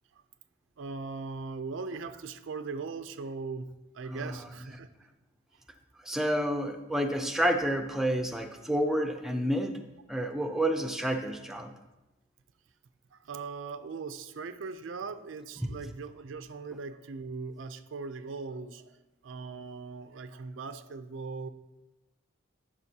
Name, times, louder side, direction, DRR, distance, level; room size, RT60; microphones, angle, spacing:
voice 1, 0.8-3.7 3.9-4.9 13.1-18.9 19.2-21.5, right 4 dB, 70° right, 10 dB, 0.4 m, -39 dB
voice 2, 6.0-9.8 10.1-11.7, equal, ahead, 4 dB, 0.4 m, -29 dB
11.5 x 5.8 x 2.8 m, 1.0 s
head